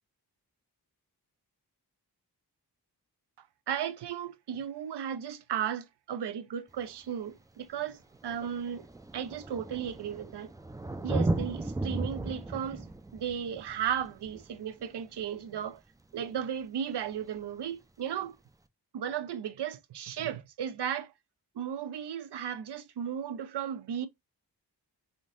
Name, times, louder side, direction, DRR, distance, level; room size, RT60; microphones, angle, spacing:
voice 1, 3.4-8.9 9.1-10.5 11.0-15.8 16.1-18.4 18.9-21.1 21.6-24.1, right 9 dB, 80° right, 0.5 m, -35 dB
Thunder, 6.8-6.9 7.8-7.9 8.1-15.5 17.1-17.2, right 2 dB, 10° right, 0.3 m, -35 dB
3.6 x 2.6 x 2.5 m
wide cardioid pair, 65°, 41 cm